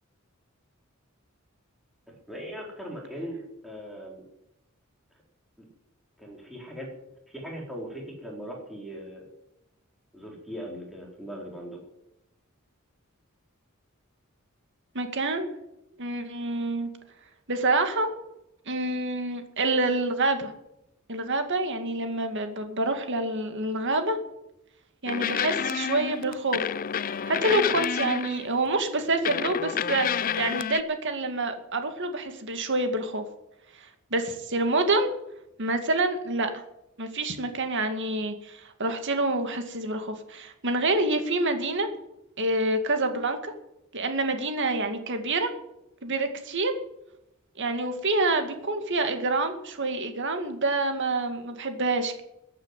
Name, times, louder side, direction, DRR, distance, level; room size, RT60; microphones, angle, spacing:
voice 1, 2.3-4.2 6.2-6.9 7.3-9.2 10.1-11.8, equal, ahead, -2 dB, 4.3 m, -39 dB
voice 2, 14.9-15.5 16.0-16.9 17.5-18.1 18.7-20.5 21.1-24.2 25.0-26.6 27.3-30.1 30.4-33.2 34.1-35.1 35.6-36.5 37.0-41.9 42.4-43.5 43.9-45.5 46.0-46.7 47.6-52.2, right 2 dB, 60° right, 6 dB, 2.3 m, -27 dB
sound 1, 25.1-28.6 29.2-30.8, left 8 dB, 40° left, 0.4 m, -29 dB
14.5 x 9.0 x 9.2 m, 0.86 s
head